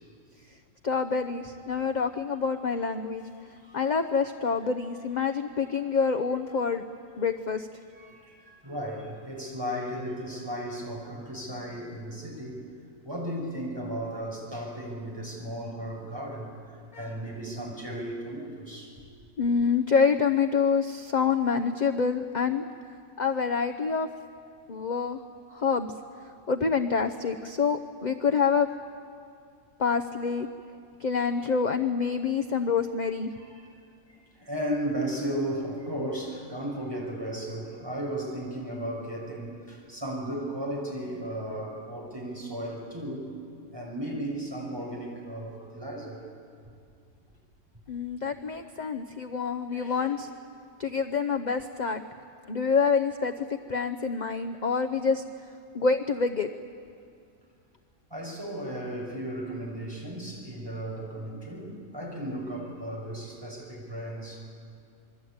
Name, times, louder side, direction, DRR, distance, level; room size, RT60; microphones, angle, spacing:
voice 1, 0.8-3.2 3.7-6.8 7.2-7.7 16.9-17.1 19.4-22.6 23.2-24.1 24.7-25.2 25.5-25.9 26.5-28.7 29.8-30.5 31.0-33.3 47.9-50.3 50.8-52.0 52.5-55.2 55.7-56.5, left 5 dB, 40° left, 6 dB, 0.7 m, -27 dB
voice 2, 7.9-12.7 13.0-18.9 33.4-33.8 34.1-43.3 43.7-46.2 49.7-50.1 58.1-64.6, right 1 dB, 15° right, -2 dB, 6.4 m, -35 dB
26.5 x 23.0 x 8.7 m, 2.3 s
omnidirectional pair, 1.6 m